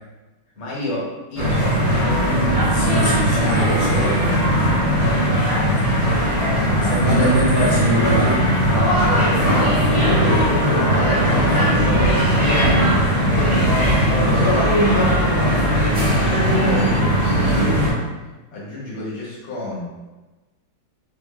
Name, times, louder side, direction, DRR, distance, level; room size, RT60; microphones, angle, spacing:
voice 1, 0.6-2.4 3.3-5.1 6.7-7.4 8.6-10.7 10.9-12.0 13.3-15.1 15.8-18.0 18.5-19.9, left 2 dB, 75° left, -7 dB, 1.9 m, -29 dB
sound 1, 1.4-17.9, equal, 85° right, 2.2 m, -18 dB
voice 2, 2.7-4.2 6.8-8.4, right 1 dB, 5° left, -9 dB, 0.6 m, -23 dB
5.1 x 2.0 x 2.5 m, 1.2 s
omnidirectional pair, 2.2 m